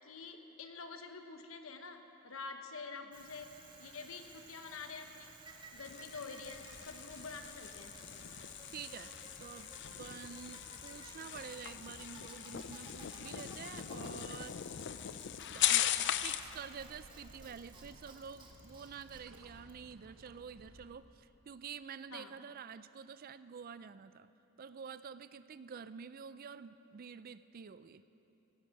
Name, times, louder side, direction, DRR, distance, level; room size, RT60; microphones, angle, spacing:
voice 1, 0.0-5.3 5.7-8.0 22.1-22.4, left 4 dB, 70° left, 6 dB, 1.1 m, -47 dB
Bicycle, 3.1-20.2, right 3 dB, 20° right, 1.5 m, -57 dB
sound 1, 5.8-16.6, left 11 dB, 55° left, 0.5 m, -39 dB
sound 2, 6.4-20.9, right 1 dB, 65° right, 1.1 m, -61 dB
voice 2, 8.7-9.1 9.4-9.7 10.0-14.6 15.5-24.3 24.6-28.0, right 6 dB, 45° right, 14 dB, 0.4 m, -48 dB
16.5 x 9.9 x 7.8 m, 3.0 s
head